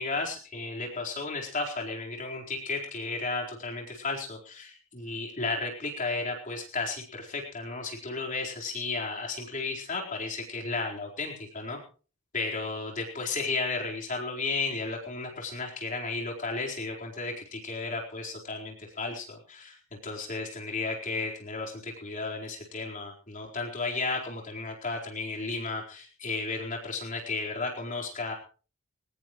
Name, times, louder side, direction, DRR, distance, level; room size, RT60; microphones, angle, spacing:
voice 1, 0.0-11.8 12.3-28.3, left 3 dB, 40° left, 0 dB, 4.3 m, -34 dB
21.5 x 18.5 x 3.1 m, 0.37 s
head